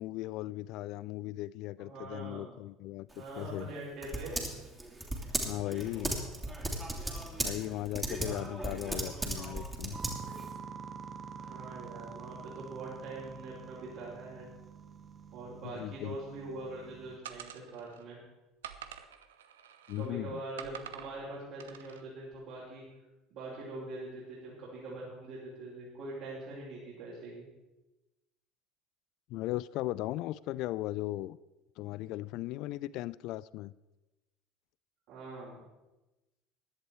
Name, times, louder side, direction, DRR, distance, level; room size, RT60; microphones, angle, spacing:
voice 1, 0.0-3.7 5.4-6.2 7.4-10.0 15.6-16.2 19.9-20.4 29.3-31.4 31.8-33.7, left 16 dB, 60° left, 19 dB, 0.3 m, -37 dB
voice 2, 1.8-2.5 3.2-4.4 11.4-14.5 15.3-18.2 19.9-22.8 23.3-27.4 35.1-35.6, right 2 dB, 60° right, -8 dB, 5.1 m, -43 dB
Typing, 3.1-10.5, right 1 dB, 15° right, 2.9 m, -37 dB
sound 1, 9.9-17.2, right 6 dB, 30° right, 1.2 m, -47 dB
sound 2, 17.2-18.0 18.6-20.1 20.6-21.1 21.6-22.0, right 9 dB, 75° right, 0.8 m, -47 dB
15.5 x 11.0 x 4.6 m, 1.0 s
figure-of-eight pair, 65°, 0 cm